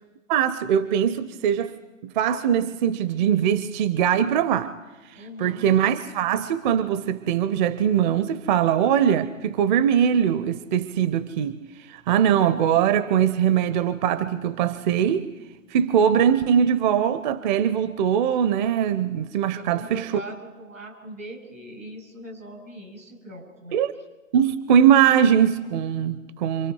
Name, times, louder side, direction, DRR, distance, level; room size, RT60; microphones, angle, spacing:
voice 1, 0.3-1.7 2.0-4.7 5.4-11.6 11.9-15.3 15.7-20.1 23.7-23.9 24.3-26.7, right 9 dB, 35° right, 0.8 m, -21 dB
voice 2, 5.1-5.6 19.5-23.8, right 1 dB, 85° right, 7.4 m, -41 dB
27.5 x 26.5 x 4.7 m
figure-of-eight pair, 120°, 39 cm